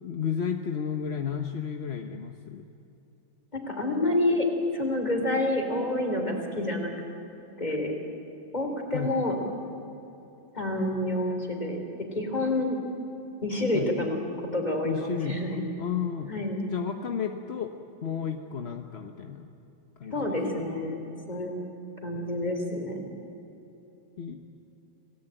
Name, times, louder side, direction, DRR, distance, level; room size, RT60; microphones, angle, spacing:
voice 1, 0.0-2.6 8.9-9.1 13.7-13.9 14.8-16.3 16.7-17.7 18.0-19.5 20.0-20.6 24.2-24.5, left 7 dB, 45° left, 5 dB, 0.9 m, -32 dB
voice 2, 3.5-4.5 4.7-6.9 7.6-7.9 8.5-9.4 10.5-12.8 13.4-14.2 14.5-15.7 16.3-16.6 20.1-21.5 22.0-23.1, left 1 dB, 20° left, 3 dB, 3.8 m, -28 dB
27.0 x 18.0 x 9.0 m, 3.0 s
omnidirectional pair, 2.1 m